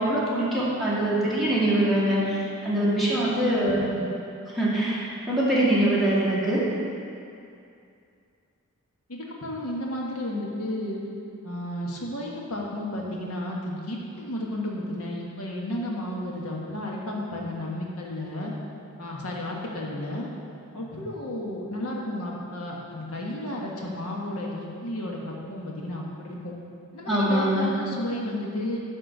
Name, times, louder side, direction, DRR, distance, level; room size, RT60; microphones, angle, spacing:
voice 1, 0.0-2.4 2.6-3.9 4.5-6.6 27.1-27.7, right 1 dB, ahead, -9 dB, 2.2 m, -23 dB
voice 2, 3.6-4.0 9.1-11.0 11.4-18.5 19.0-20.3 20.7-26.5 26.9-28.8, left 1 dB, 80° left, -2 dB, 1.4 m, -33 dB
10.5 x 4.4 x 6.5 m, 2.5 s
head